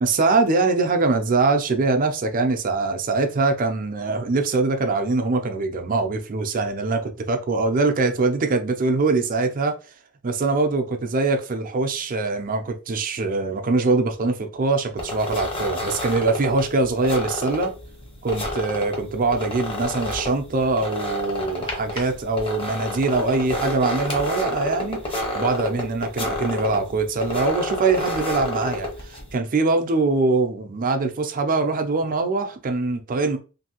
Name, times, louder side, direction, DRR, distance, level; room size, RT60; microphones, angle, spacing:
voice 1, 0.0-9.7 10.2-17.7 18.2-25.0 25.3-33.4, right 3 dB, 40° right, 0.4 m, -23 dB
sound 1, 15.0-29.4, left 1 dB, 25° left, 0.7 m, -30 dB
2.7 x 2.6 x 2.8 m
head